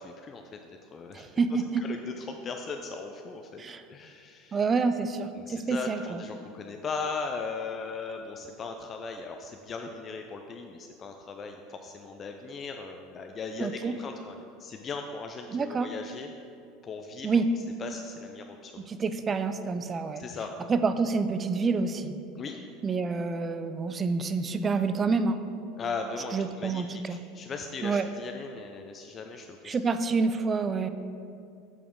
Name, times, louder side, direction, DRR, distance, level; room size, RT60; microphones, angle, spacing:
voice 1, 0.0-3.6 3.9-4.6 5.4-16.3 16.8-17.4 17.8-18.9 20.2-20.5 22.4-22.6 25.8-26.8 27.1-29.8, left 4 dB, 35° left, 4 dB, 0.4 m, -38 dB
voice 2, 1.1-1.8 3.6-3.8 4.5-6.2 13.6-14.0 15.5-15.9 17.2-17.5 18.8-20.2 20.7-22.2 22.8-25.4 26.3-27.2 27.8-28.1 29.7-30.9, right 4 dB, 30° right, 11 dB, 0.4 m, -28 dB
8.0 x 4.9 x 3.6 m, 2.5 s
hypercardioid pair, 95°, 0 cm